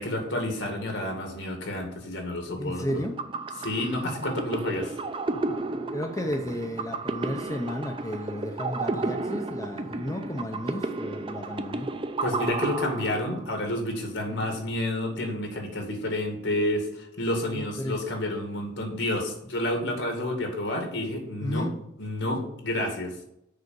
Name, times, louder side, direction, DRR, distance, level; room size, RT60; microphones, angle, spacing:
voice 1, 0.0-3.0 3.6-4.9 12.2-21.7 22.0-23.1, left 1 dB, 70° left, 3 dB, 2.2 m, -30 dB
voice 2, 2.6-3.1 5.6-5.7 5.9-11.9 14.3-14.4 17.5-18.0 21.4-21.7, equal, 15° left, 2 dB, 0.6 m, -33 dB
sound 1, 2.9-13.7, right 3 dB, 25° right, 0.5 m, -32 dB
6.7 x 4.9 x 6.9 m, 0.79 s
head